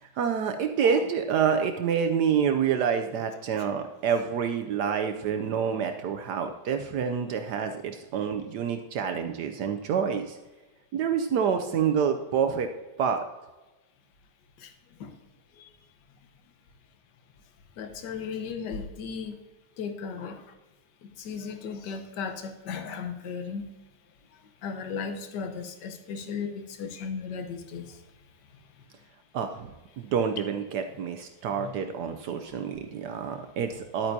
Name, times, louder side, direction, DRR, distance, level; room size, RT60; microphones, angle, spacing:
voice 1, 0.0-10.4 10.9-12.7 13.0-13.3 29.3-34.1, right 7 dB, 75° right, 7 dB, 1.0 m, -27 dB
voice 2, 17.8-19.4 19.8-20.4 21.0-23.7 24.6-28.0 31.6-31.7, left 6 dB, 65° left, 6 dB, 1.4 m, -36 dB
11.0 x 8.8 x 2.7 m, 1.1 s
omnidirectional pair, 2.2 m